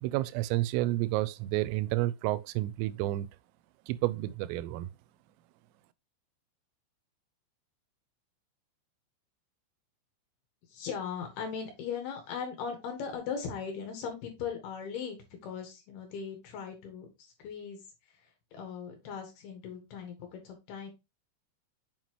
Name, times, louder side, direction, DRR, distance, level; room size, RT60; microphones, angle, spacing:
voice 1, 0.0-3.3 3.9-4.9, right 17 dB, 85° right, 3.2 m, -30 dB
voice 2, 10.7-17.8 18.1-18.2 18.5-20.9, left 6 dB, 65° left, 3.0 m, -39 dB
7.4 x 5.6 x 2.9 m
omnidirectional pair, 5.8 m